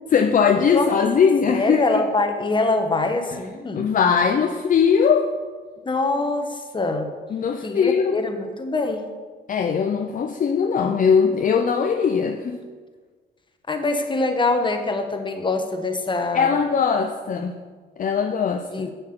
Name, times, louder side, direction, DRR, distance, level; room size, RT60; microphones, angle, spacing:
voice 1, 0.1-2.0 3.7-5.3 7.3-8.2 9.5-12.6 16.3-17.6 18.0-18.9, left 6 dB, 40° left, 5 dB, 0.6 m, -20 dB
voice 2, 1.5-3.8 5.8-7.1 7.6-9.0 13.7-16.6 18.7-18.9, left 3 dB, 25° left, 6 dB, 1.1 m, -24 dB
7.4 x 7.1 x 5.9 m, 1.5 s
cardioid pair, 90°, 20 cm